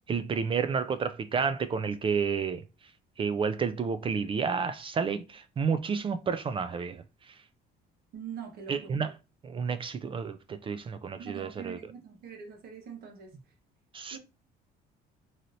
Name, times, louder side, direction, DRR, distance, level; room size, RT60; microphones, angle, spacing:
voice 1, 0.1-2.6 3.2-7.0 8.7-9.2 9.4-11.8 13.9-14.2, right 6 dB, 30° right, 0.3 m, -30 dB
voice 2, 8.1-8.9 11.2-13.3 14.1-14.2, right 7 dB, 65° right, 1.1 m, -43 dB
3.1 x 2.7 x 2.6 m
cardioid pair, 110°, 17 cm